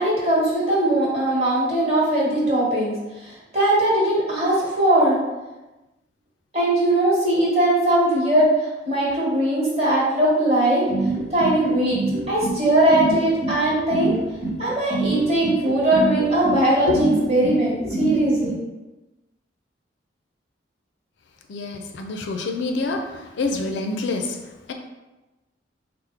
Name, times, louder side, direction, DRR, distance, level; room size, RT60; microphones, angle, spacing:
voice 1, 0.0-2.9 3.2-5.2 6.5-10.8 11.3-12.0 12.3-14.1 14.6-18.5, right 1 dB, 35° right, -6 dB, 1.4 m, -20 dB
sound 1, 10.9-18.5, right 3 dB, 15° right, 0.9 m, -25 dB
voice 2, 21.5-24.7, left 3 dB, 70° left, 4 dB, 0.4 m, -27 dB
4.4 x 2.0 x 3.5 m, 1.1 s
head